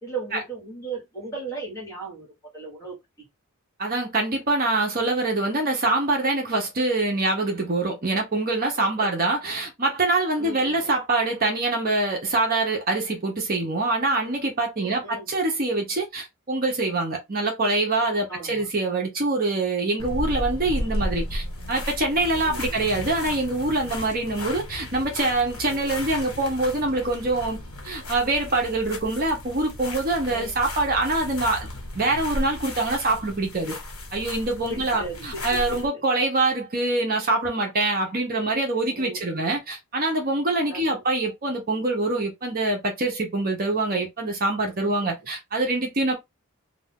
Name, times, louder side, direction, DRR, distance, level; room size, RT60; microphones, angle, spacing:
voice 1, 0.0-3.3 8.8-9.1 10.4-10.9 14.8-15.3 18.3-18.7 22.4-22.8 25.7-25.9 30.3-30.6 34.7-35.8 38.9-39.6 40.7-41.0 45.0-45.1, right 3 dB, 15° left, 1.4 m, -37 dB
voice 2, 3.8-27.6 27.8-31.7 31.9-33.7 34.1-46.1, right 2 dB, 40° right, 0.7 m, -25 dB
sound 1, 20.0-35.9, left 1 dB, 75° left, 1.1 m, -34 dB
2.5 x 2.3 x 3.4 m
head